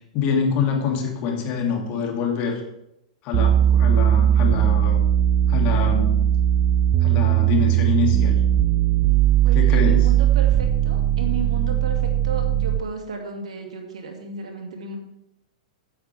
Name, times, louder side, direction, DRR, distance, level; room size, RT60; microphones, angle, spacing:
voice 1, 0.1-2.6 3.2-5.0 5.5-6.2 7.0-8.4 9.5-10.1, left 5 dB, 35° left, 1 dB, 2.7 m, -25 dB
sound 1, 3.3-12.9, right 11 dB, 35° right, 0.5 m, -19 dB
voice 2, 9.4-15.0, right 4 dB, 65° right, 3 dB, 2.3 m, -33 dB
15.0 x 8.6 x 3.5 m, 0.81 s
figure-of-eight pair, 105°, 4 cm